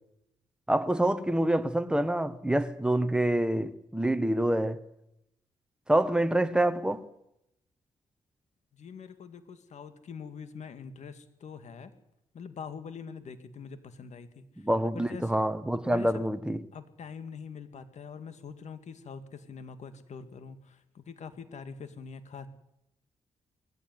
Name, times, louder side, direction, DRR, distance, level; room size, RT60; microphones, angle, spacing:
voice 1, 0.7-4.8 5.9-7.0 14.6-16.6, right 1 dB, 5° right, 1.5 m, -26 dB
voice 2, 8.7-11.9 12.3-14.5 14.9-15.4 15.9-16.2 16.7-22.5, left 6 dB, 70° left, 2.2 m, -44 dB
20.0 x 15.0 x 9.4 m
cardioid pair, 70°, 13 cm